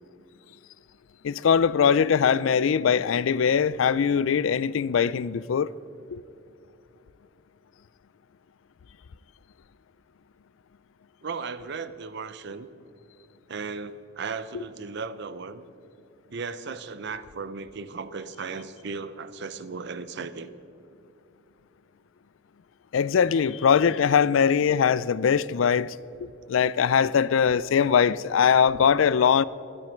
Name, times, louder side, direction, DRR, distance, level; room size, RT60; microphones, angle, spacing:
voice 1, 1.2-5.7 6.1-6.2 22.9-29.4, left 7 dB, 85° left, 0.4 m, -21 dB
voice 2, 11.2-12.7 13.5-15.6 16.3-20.5, right 5 dB, 60° right, 0.6 m, -36 dB
13.0 x 12.0 x 5.2 m
head